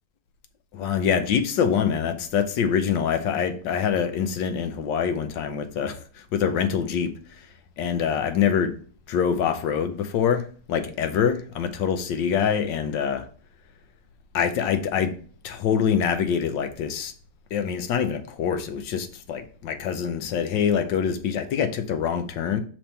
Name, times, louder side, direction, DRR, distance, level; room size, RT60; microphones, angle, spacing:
voice 1, 0.7-6.0 6.3-7.1 7.8-8.7 9.1-10.4 10.7-13.2 14.3-15.1 15.4-17.1 17.5-22.6, left 7 dB, 75° left, 1.4 m, -25 dB
5.7 x 3.5 x 5.4 m
omnidirectional pair, 2.0 m